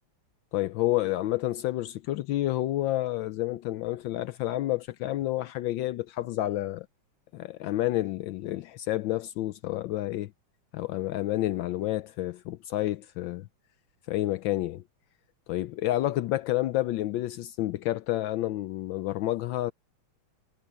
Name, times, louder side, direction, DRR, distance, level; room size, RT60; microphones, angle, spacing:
voice 1, 0.5-6.9 7.3-10.3 10.7-13.5 14.1-14.8 15.5-19.7, left 15 dB, 75° left, 1.3 m, -29 dB
omnidirectional pair, 2.2 m